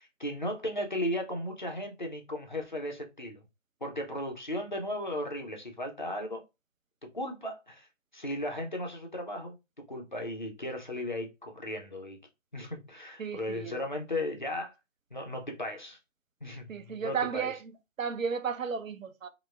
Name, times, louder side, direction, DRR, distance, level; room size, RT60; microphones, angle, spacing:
voice 1, 0.0-3.4 3.8-6.4 7.0-7.9 8.1-9.6 9.9-12.2 12.5-14.7 15.1-16.0 16.4-17.5, left 1 dB, 40° left, 0.4 m, -36 dB
voice 2, 13.2-13.8 16.7-17.6 18.0-19.3, right 6 dB, 80° right, 0.6 m, -33 dB
3.2 x 2.1 x 2.2 m
figure-of-eight pair, 160°, 39 cm